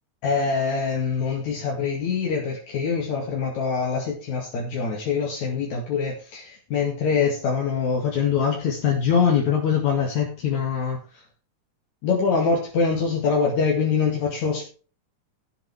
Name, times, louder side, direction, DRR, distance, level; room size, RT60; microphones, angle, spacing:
voice 1, 0.2-11.0 12.0-14.7, left 6 dB, 65° left, -1 dB, 3.4 m, -24 dB
17.0 x 7.6 x 3.4 m, 0.37 s
omnidirectional pair, 3.5 m